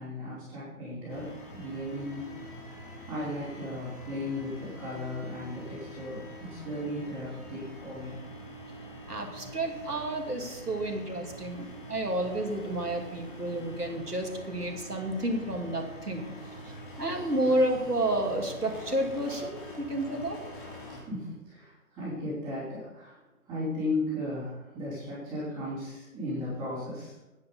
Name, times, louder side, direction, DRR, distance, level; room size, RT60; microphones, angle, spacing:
voice 1, 0.0-2.5 3.1-8.1 16.9-17.0 17.4-17.5 20.9-27.2, left 1 dB, 10° right, -14 dB, 3.9 m, -36 dB
sound 1, 1.1-21.0, equal, 35° left, 2.7 m, -45 dB
voice 2, 9.1-16.3 16.6-20.4, right 1 dB, 80° right, 2 dB, 2.7 m, -31 dB
11.0 x 9.4 x 5.3 m, 1.0 s
figure-of-eight pair, 145°, 46 cm